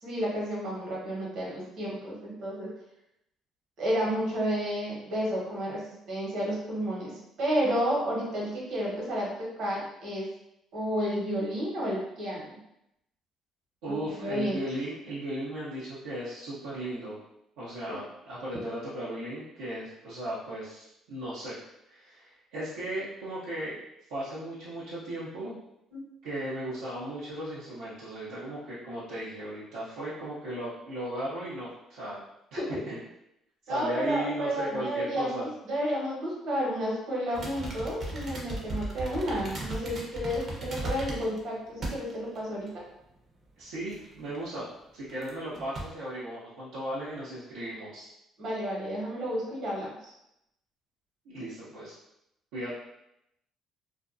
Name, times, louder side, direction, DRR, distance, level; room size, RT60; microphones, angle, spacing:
voice 1, 0.0-2.7 3.8-5.8 6.1-7.1 7.4-10.3 10.7-12.6 13.9-14.0 14.2-14.6 17.9-18.0 25.9-26.0 32.6-32.7 33.7-42.7 48.4-50.1, equal, 65° right, -5 dB, 1.1 m, -31 dB
voice 2, 13.8-17.2 17.6-21.6 21.9-23.8 24.1-25.6 26.2-32.2 32.9-33.0 33.7-35.4 43.6-48.1 51.3-51.9 52.5-52.7, right 1 dB, 85° right, -10 dB, 0.7 m, -36 dB
sound 1, 37.3-41.4 41.8-42.4 42.7-42.8 43.9-44.4 45.1-45.3 45.5-45.8, right 2 dB, 50° right, 0.7 m, -36 dB
2.5 x 2.2 x 2.5 m, 0.81 s
supercardioid pair, 75°, 0 cm